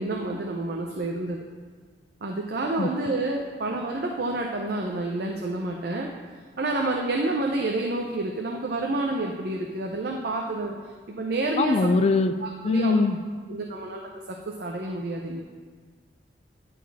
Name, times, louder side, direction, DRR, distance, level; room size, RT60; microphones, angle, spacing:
voice 1, 0.0-1.4 2.2-6.1 6.6-10.8 11.1-11.9 12.4-13.0 13.5-15.4, right 2 dB, 60° right, 1 dB, 0.6 m, -29 dB
voice 2, 11.6-12.3 12.6-13.2, left 3 dB, 35° left, 8 dB, 0.3 m, -21 dB
10.5 x 4.1 x 4.1 m, 1.6 s
head